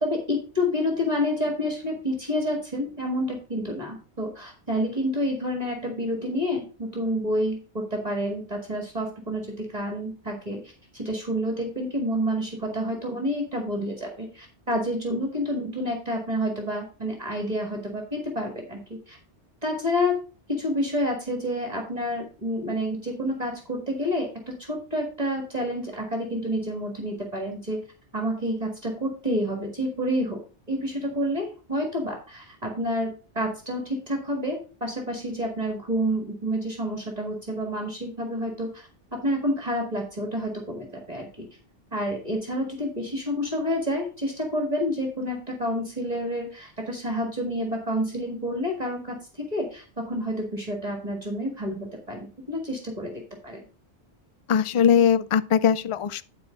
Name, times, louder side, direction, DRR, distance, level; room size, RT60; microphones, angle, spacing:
voice 1, 0.0-19.2 19.6-20.2 20.5-27.8 28.1-30.4 30.7-41.3 41.9-53.1 53.4-53.6, equal, 35° right, 2.0 m, -29 dB
voice 2, 54.5-56.2, left 7 dB, 50° left, 0.3 m, -20 dB
10.5 x 4.6 x 5.1 m
omnidirectional pair, 1.2 m